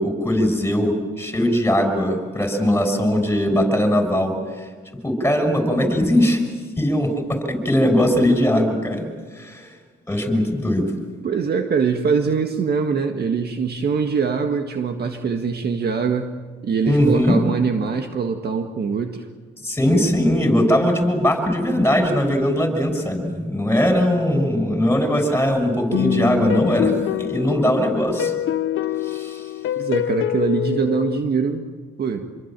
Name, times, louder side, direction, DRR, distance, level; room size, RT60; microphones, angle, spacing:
voice 1, 0.0-4.3 5.0-6.4 6.8-9.1 9.3-9.7 10.1-10.9 16.8-17.4 19.6-28.3 29.0-29.4, equal, 10° left, 5 dB, 6.4 m, -20 dB
voice 2, 11.2-16.3 16.6-19.3 19.8-20.0 29.8-31.7 32.0-32.3, right 5 dB, 55° right, 5 dB, 1.8 m, -23 dB
sound 1, 25.9-31.2, left 10 dB, 75° left, 0.9 m, -25 dB
27.0 x 22.5 x 7.6 m, 1.5 s
cardioid pair, 90°, 20 cm